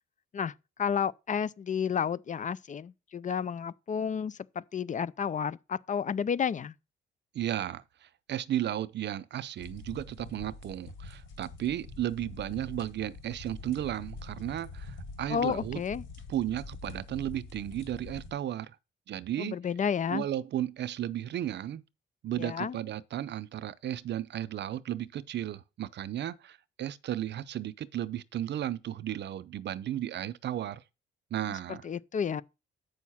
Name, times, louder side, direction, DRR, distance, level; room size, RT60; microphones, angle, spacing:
voice 1, 0.8-6.7 15.3-16.0 19.4-20.2 22.4-22.8 31.4-32.4, left 7 dB, 40° left, 0.5 m, -31 dB
voice 2, 7.3-15.8 16.3-18.7 19.1-19.6 20.1-21.8 22.2-30.8 31.3-31.8, right 12 dB, 60° right, 0.7 m, -34 dB
sound 1, 9.6-18.3, left 3 dB, 75° left, 5.7 m, -45 dB
8.4 x 6.5 x 5.7 m
cardioid pair, 90°, 20 cm